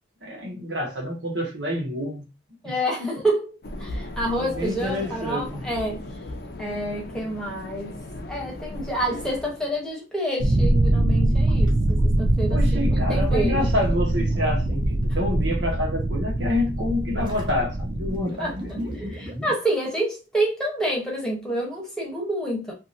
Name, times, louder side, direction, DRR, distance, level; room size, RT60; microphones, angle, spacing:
voice 1, 0.2-2.2 2.6-2.7 4.4-5.6 12.5-19.0, left 1 dB, 90° right, 1.2 m, -28 dB
voice 2, 2.6-3.5 3.8-6.0 6.6-8.0 8.3-13.6 18.4-22.7, right 1 dB, 5° left, 0.9 m, -28 dB
sound 1, 3.6-9.9, left 1 dB, 55° left, 0.5 m, -37 dB
sound 2, 4.6-5.3 5.8-5.9 9.0-9.4 11.4-12.0 12.3-15.0 15.4-15.8 17.2-20.0, equal, 25° right, 0.7 m, -38 dB
sound 3, 10.4-18.2, right 1 dB, 55° right, 0.4 m, -22 dB
2.7 x 2.6 x 2.6 m
head